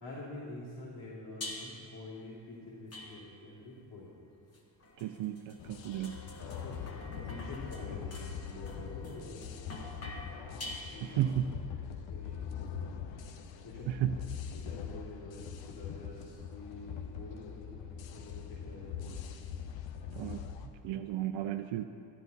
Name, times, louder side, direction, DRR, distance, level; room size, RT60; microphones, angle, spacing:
voice 1, 0.0-4.1 6.4-11.5 11.7-12.9 13.3-13.9 14.5-19.4, left 2 dB, 70° left, -9 dB, 2.6 m, -48 dB
sound 1, 1.4-2.0 2.9-3.6 4.5-11.4, left 1 dB, 35° left, 1.2 m, -47 dB
voice 2, 5.0-6.1 11.2-11.4 14.0-14.1 20.2-20.4 20.8-21.8, right 12 dB, 85° right, 6 dB, 0.5 m, -33 dB
sound 2, 5.6-20.7, left 7 dB, 85° left, 0.8 m, -42 dB
12.0 x 11.0 x 4.0 m, 2.6 s
cardioid pair, 175°, 43 cm